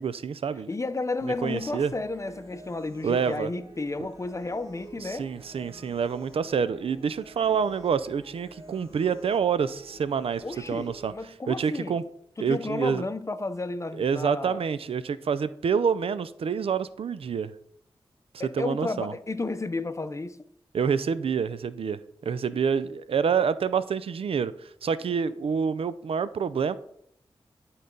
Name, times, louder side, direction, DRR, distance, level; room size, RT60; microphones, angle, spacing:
voice 1, 0.0-0.7 1.2-1.9 3.0-3.5 5.0-10.4 10.7-11.1 11.5-12.0 12.4-13.0 14.0-17.5 18.5-19.1 20.7-26.8, right 6 dB, 80° right, 0.4 m, -27 dB
voice 2, 0.7-5.3 10.4-11.9 12.4-14.6 18.4-20.4, left 3 dB, 30° left, 0.6 m, -32 dB
sound 1, 1.2-11.2, right 2 dB, 35° right, 2.6 m, -49 dB
11.5 x 4.0 x 3.8 m
cardioid pair, 45°, 10 cm